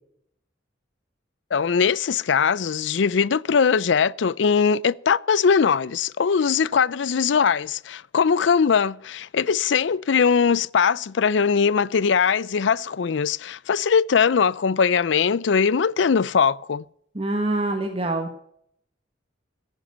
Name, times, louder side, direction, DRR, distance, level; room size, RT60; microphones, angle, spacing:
voice 1, 1.5-16.8, left 6 dB, 70° left, 0.5 m, -21 dB
voice 2, 17.1-18.4, right 2 dB, 30° right, 1.3 m, -25 dB
14.0 x 11.0 x 6.8 m
head